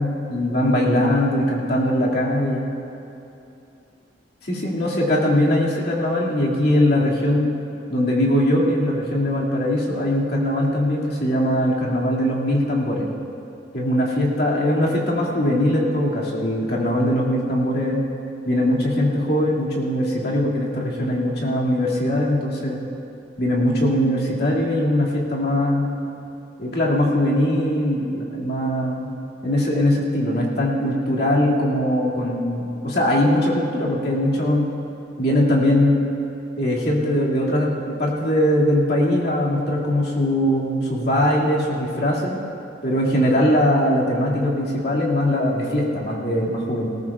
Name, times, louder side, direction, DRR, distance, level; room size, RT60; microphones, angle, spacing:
voice 1, 0.0-2.7 4.4-7.5 7.9-13.1 13.7-18.0 18.4-22.8 23.4-25.9 26.6-29.1 29.4-34.7 35.2-36.0 36.6-42.4 42.8-46.9, left 1 dB, 60° left, -4 dB, 2.3 m, -21 dB
19.5 x 18.0 x 2.4 m, 2.7 s
head